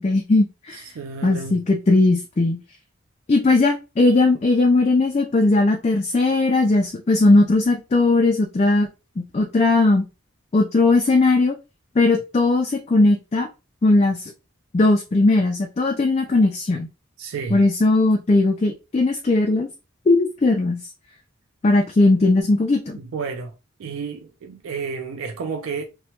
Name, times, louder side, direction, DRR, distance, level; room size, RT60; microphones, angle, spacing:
voice 1, 0.0-0.8 1.2-2.6 3.3-8.9 9.2-10.1 10.5-11.6 12.0-13.5 13.8-14.3 14.7-16.9 17.5-19.7 20.1-20.9 21.6-23.0, left 2 dB, 30° left, 0.3 m, -18 dB
voice 2, 0.8-1.6 17.2-17.6 23.0-23.5 23.8-25.8, right 5 dB, 75° right, 0.4 m, -31 dB
2.9 x 2.1 x 2.8 m
head